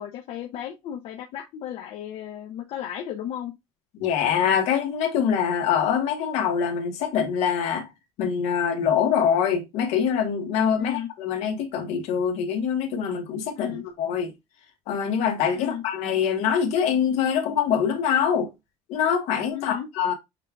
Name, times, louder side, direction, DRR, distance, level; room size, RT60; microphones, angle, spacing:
voice 1, 0.0-3.5 10.8-11.1 13.6-13.9 15.5-15.8 19.5-19.9, left 10 dB, 55° left, 0.7 m, -34 dB
voice 2, 4.0-7.9 8.2-14.3 14.9-18.5 18.9-20.1, left 7 dB, 70° left, 1.3 m, -24 dB
6.5 x 2.4 x 3.4 m
cardioid pair, 155°, 12 cm